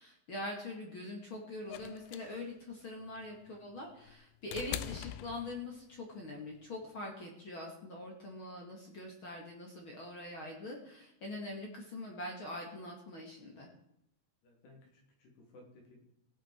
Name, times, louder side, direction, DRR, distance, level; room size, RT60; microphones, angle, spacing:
voice 1, 0.0-13.7, left 1 dB, 45° left, 0 dB, 1.8 m, -43 dB
sound 1, 1.7-6.0 7.2-7.3, left 13 dB, 90° left, 2.2 m, -44 dB
voice 2, 14.4-16.0, left 1 dB, 70° left, -1 dB, 5.4 m, -59 dB
17.0 x 8.3 x 4.5 m, 0.81 s
omnidirectional pair, 5.1 m